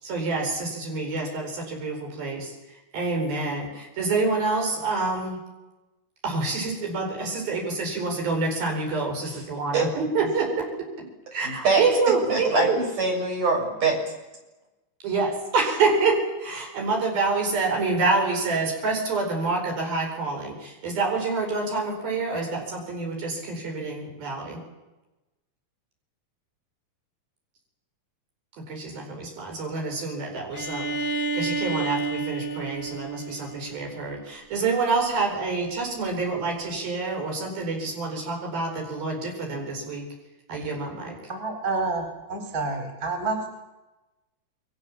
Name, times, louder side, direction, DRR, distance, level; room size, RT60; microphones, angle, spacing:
voice 1, 0.0-5.4 6.2-10.7 11.3-12.8 15.0-24.6 28.7-40.1 40.5-41.2, right 3 dB, 80° right, 1 dB, 6.4 m, -27 dB
voice 2, 11.4-11.8 12.3-14.0, right 3 dB, 60° right, 0 dB, 8.2 m, -24 dB
Bowed string instrument, 30.5-34.3, right 4 dB, 65° left, 0.6 m, -30 dB
voice 3, 41.3-43.5, right 3 dB, 30° right, 3 dB, 4.6 m, -29 dB
28.5 x 23.5 x 7.4 m, 1.1 s
omnidirectional pair, 4.1 m